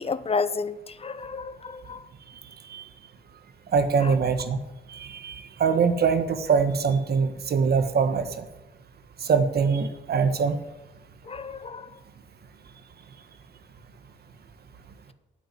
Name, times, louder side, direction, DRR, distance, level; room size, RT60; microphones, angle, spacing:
voice 1, 0.0-2.0 4.0-4.2 11.3-11.9, left 4 dB, 30° left, 0.8 m, -31 dB
voice 2, 3.7-4.6 4.9-8.4 9.2-10.6, right 5 dB, 50° right, 1.5 m, -23 dB
9.2 x 9.2 x 9.3 m
cardioid pair, 90°, 20 cm